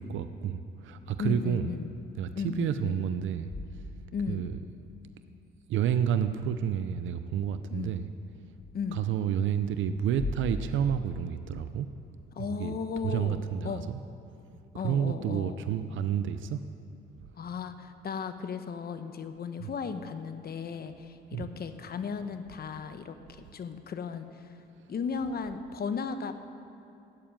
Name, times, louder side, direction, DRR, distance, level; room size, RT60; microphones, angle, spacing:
voice 1, 0.1-1.7 2.2-3.5 4.3-4.6 5.7-8.0 8.9-11.9 12.4-12.7 13.0-13.8 14.8-16.6 19.6-19.7 21.3-21.5, right 9 dB, 75° right, 10 dB, 0.6 m, -30 dB
voice 2, 1.2-1.9 2.3-3.0 4.1-4.4 7.7-7.9 8.7-9.0 12.3-13.9 14.7-15.6 17.4-24.5 24.9-26.4, left 6 dB, 50° left, 9 dB, 1.0 m, -35 dB
sound 1, 3.2-4.6 5.7-6.4 8.5-8.7 10.0-12.0, left 2 dB, 70° left, 4.3 m, -40 dB
13.5 x 9.3 x 8.9 m, 2.8 s
cardioid pair, 90°, 20 cm